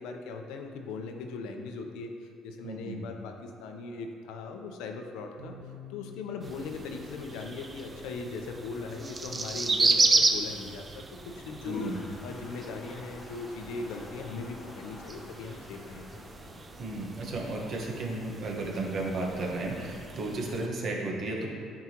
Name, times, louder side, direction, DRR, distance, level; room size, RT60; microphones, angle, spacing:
voice 1, 0.0-5.5 5.9-11.0 11.3-11.9 12.2-16.1, left 4 dB, 85° left, 4 dB, 0.7 m, -39 dB
voice 2, 2.6-3.0 11.6-12.1 16.8-21.5, right 2 dB, 50° right, -1 dB, 1.3 m, -34 dB
sound 1, 5.4-13.1, left 5 dB, 90° right, 1.4 m, -53 dB
sound 2, 6.4-20.7, right 3 dB, 25° right, 0.5 m, -33 dB
Toilet flush, 11.2-17.3, left 3 dB, 35° left, 0.8 m, -47 dB
9.4 x 4.8 x 3.0 m, 2.5 s
cardioid pair, 120°, 0 cm